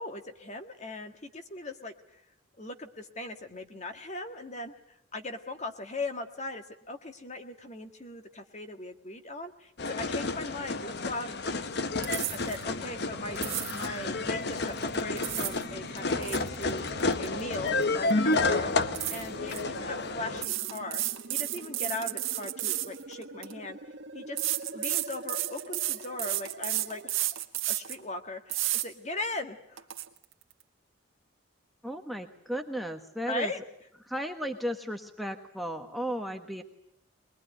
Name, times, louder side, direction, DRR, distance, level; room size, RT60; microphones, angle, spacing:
voice 1, 0.0-1.9 2.6-4.7 5.1-13.4 13.7-16.8 17.2-23.8 24.1-24.5 24.7-27.2 27.7-29.8 33.2-33.6, left 2 dB, 35° left, 6 dB, 1.8 m, -39 dB
sound 1, 9.8-20.4, left 3 dB, 55° left, 0.9 m, -31 dB
sound 2, 12.0-12.6 13.4-13.9 14.9-15.6 16.0-17.8 18.1-18.3 18.9-19.6 20.4-23.5 24.4-28.0 28.5-28.9 29.3-29.4 29.8-30.0, right 16 dB, 75° right, 1.7 m, -32 dB
sound 3, 12.2-27.1, right 2 dB, 60° right, 1.4 m, -46 dB
voice 2, 31.8-33.5 34.1-36.6, equal, ahead, 6 dB, 1.3 m, -35 dB
22.5 x 21.5 x 10.0 m, 0.75 s
head